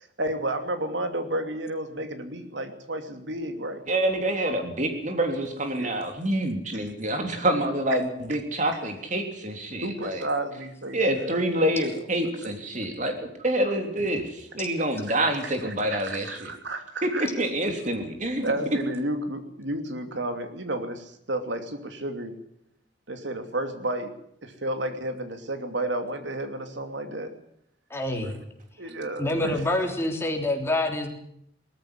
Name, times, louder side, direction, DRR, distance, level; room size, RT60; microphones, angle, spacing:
voice 1, 0.2-3.8 5.8-5.9 9.8-11.9 12.4-12.5 15.4-17.3 18.4-22.4 23.1-24.1 24.4-27.3 28.1-28.3 28.8-29.6, right 1 dB, 90° right, 7 dB, 2.7 m, -32 dB
voice 2, 3.9-10.2 10.9-16.5 17.0-18.4, right 1 dB, 45° right, 5 dB, 3.5 m, -27 dB
voice 3, 18.3-18.6 27.9-28.3 29.2-31.1, left 1 dB, 15° left, 2 dB, 3.3 m, -27 dB
19.0 x 14.0 x 9.9 m, 0.72 s
head